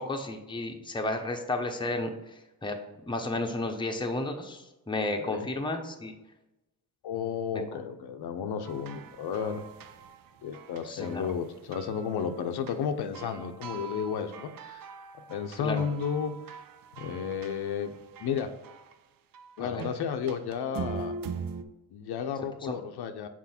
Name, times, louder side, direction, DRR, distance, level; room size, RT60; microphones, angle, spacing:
voice 1, 0.0-2.1 2.6-2.8 3.0-6.1 10.9-11.3 15.6-15.8 19.6-19.8 22.6-22.7, left 2 dB, 10° left, 3 dB, 0.8 m, -32 dB
voice 2, 5.0-5.5 7.0-9.6 10.4-14.9 15.3-16.6 17.0-17.9 18.2-18.5 19.6-21.1 21.9-23.3, left 7 dB, 80° left, 7 dB, 0.7 m, -33 dB
sound 1, 8.6-11.4 11.7-12.8 13.1-18.9 19.3-21.6, right 5 dB, 60° right, 0.6 m, -42 dB
6.1 x 4.4 x 4.3 m, 0.99 s
cardioid pair, 105°, 38 cm